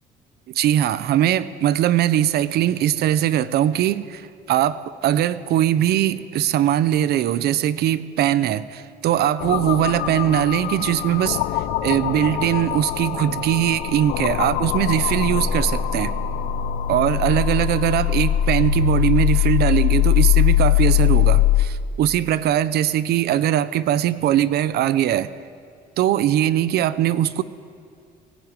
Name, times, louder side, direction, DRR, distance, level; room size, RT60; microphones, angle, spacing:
voice 1, 0.5-16.1 16.9-25.3 26.0-27.4, right 11 dB, 70° right, 15 dB, 0.9 m, -21 dB
sound 1, 9.4-21.7, left 12 dB, 90° left, 1.2 m, -21 dB
19.0 x 17.5 x 9.2 m, 2.2 s
cardioid pair, 110°, 17 cm